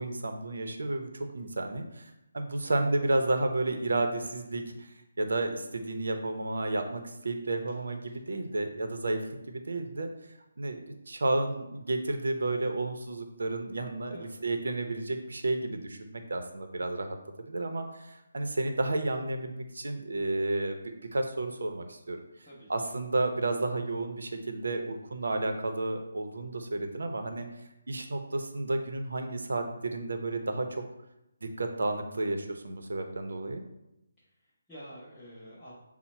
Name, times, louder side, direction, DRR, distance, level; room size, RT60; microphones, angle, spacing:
voice 1, 0.0-4.9 5.2-10.1 10.6-17.2 17.5-22.2 22.7-27.5 27.9-30.8 31.4-33.6, right 2 dB, 80° right, 6 dB, 0.7 m, -32 dB
voice 2, 22.4-22.9 34.2-35.7, equal, 5° left, -15 dB, 0.8 m, -49 dB
5.8 x 2.1 x 4.1 m, 0.90 s
hypercardioid pair, 175°, 0 cm